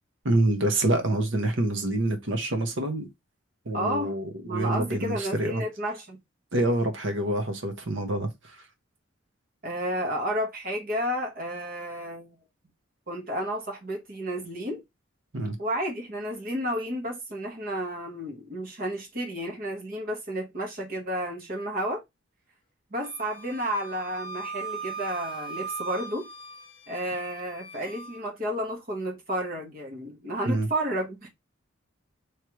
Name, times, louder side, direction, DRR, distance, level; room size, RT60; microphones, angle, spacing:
voice 1, 0.2-3.1 3.7-5.6 6.5-8.6 15.3-15.5 30.4-30.7, right 1 dB, 65° right, 1.1 m, -26 dB
voice 2, 3.7-4.1 4.4-6.2 9.6-12.3 13.1-14.8 15.6-22.0 22.9-26.3 26.9-31.3, equal, 45° right, 1.2 m, -31 dB
Wind instrument woodwind instrument, 23.0-28.2, right 4 dB, 25° left, 1.2 m, -39 dB
4.7 x 3.3 x 3.0 m
head